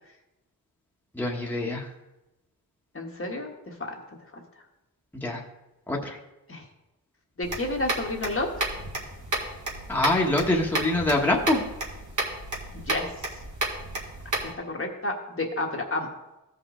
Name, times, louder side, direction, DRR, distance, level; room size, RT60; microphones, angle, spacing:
voice 1, 1.2-1.8 5.2-5.4 5.9-6.2 9.9-11.6, left 2 dB, 5° left, -2 dB, 1.3 m, -24 dB
voice 2, 2.9-3.9 6.5-6.6 7.4-8.7 12.7-13.1 14.4-16.1, left 2 dB, 35° left, 1 dB, 1.4 m, -31 dB
sound 1, 7.4-14.5, right 2 dB, 55° right, 2.1 m, -32 dB
15.0 x 5.2 x 3.7 m, 0.97 s
wide cardioid pair, 100°, 36 cm